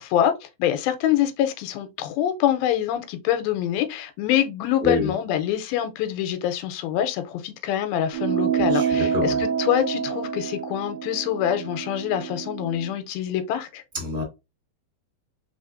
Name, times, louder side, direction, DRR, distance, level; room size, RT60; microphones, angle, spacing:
voice 1, 0.0-13.8, left 11 dB, 90° left, 2.5 m, -25 dB
sound 1, 8.1-13.0, right 7 dB, 85° right, 1.5 m, -27 dB
voice 2, 8.7-9.4 13.9-14.2, left 2 dB, ahead, 2.0 m, -26 dB
4.7 x 4.0 x 2.5 m
omnidirectional pair, 4.1 m